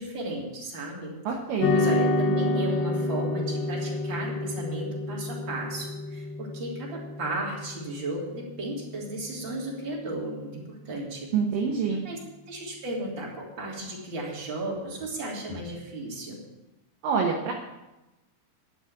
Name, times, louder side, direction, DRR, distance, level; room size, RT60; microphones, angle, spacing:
voice 1, 0.0-1.2 1.7-11.3 12.0-12.2 12.5-16.4, right 1 dB, 30° right, -3 dB, 3.6 m, -35 dB
voice 2, 1.2-1.7 11.3-12.0 17.0-17.5, right 6 dB, 65° right, 1 dB, 2.6 m, -26 dB
sound 1, 1.6-10.1, left 2 dB, 55° left, 2.3 m, -29 dB
11.5 x 8.4 x 8.8 m, 1.0 s
omnidirectional pair, 4.7 m